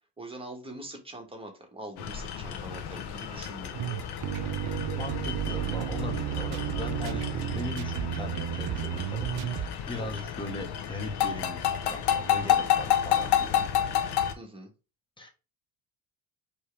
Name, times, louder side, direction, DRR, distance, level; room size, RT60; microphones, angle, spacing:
voice 1, 0.2-3.7 10.0-10.3 14.3-14.7, right 1 dB, 10° right, 1.5 m, -43 dB
sound 1, 2.0-14.3, left 10 dB, 50° left, 0.9 m, -30 dB
sound 2, 3.7-9.8, right 12 dB, 50° right, 0.6 m, -32 dB
voice 2, 4.9-13.7 15.2-15.3, left 2 dB, 10° left, 1.2 m, -38 dB
4.4 x 3.5 x 3.3 m
cardioid pair, 105°, 49 cm